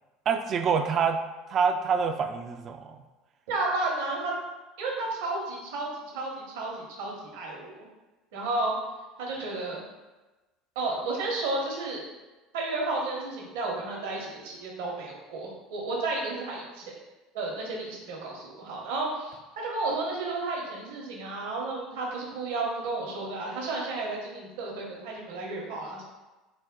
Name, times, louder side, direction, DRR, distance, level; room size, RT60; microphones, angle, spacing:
voice 1, 0.3-1.2 1.5-3.0, right 6 dB, 45° right, 7 dB, 0.4 m, -26 dB
voice 2, 3.5-4.3 4.8-7.8 8.3-8.7 9.2-9.8 10.7-12.0 12.5-16.9 17.3-26.1, right 2 dB, 75° right, -2 dB, 0.9 m, -32 dB
4.3 x 2.2 x 3.7 m, 1.1 s
hypercardioid pair, 75°, 0 cm